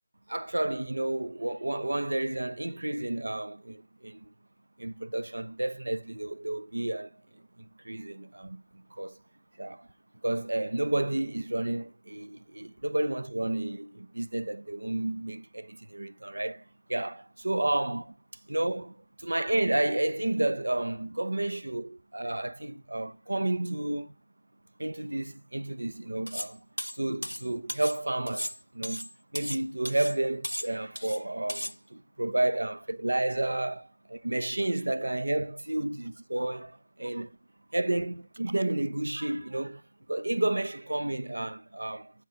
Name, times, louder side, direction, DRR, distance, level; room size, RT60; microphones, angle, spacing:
voice 1, 0.3-4.3 4.8-9.2 9.6-9.9 10.2-18.1 18.4-24.1 24.8-26.6 26.9-33.8 34.1-36.7 37.0-37.4 37.7-39.8 40.1-42.1, right 1 dB, 70° right, 0.5 m, -31 dB
sound 1, 26.3-26.5 26.8-28.0 28.3-29.6 29.9-30.2 30.4-31.2 31.5-31.7, equal, 85° left, 0.4 m, -36 dB
9.1 x 5.9 x 3.8 m
figure-of-eight pair, 160°, 0 cm